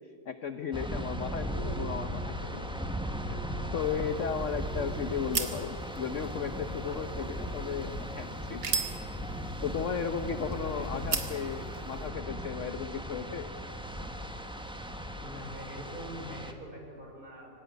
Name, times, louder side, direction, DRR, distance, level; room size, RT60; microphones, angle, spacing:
voice 1, 0.2-2.8 3.3-3.4 3.7-8.8 9.6-13.5, left 7 dB, 50° left, 9 dB, 1.0 m, -35 dB
sound 1, 0.7-16.5, equal, 5° right, 1.2 m, -37 dB
sound 2, 3.8-12.1, right 5 dB, 55° right, 2.3 m, -39 dB
voice 2, 7.3-7.8 10.7-11.6 15.2-17.5, equal, 25° right, 0 dB, 5.1 m, -45 dB
25.5 x 16.0 x 9.4 m, 2.6 s
omnidirectional pair, 2.0 m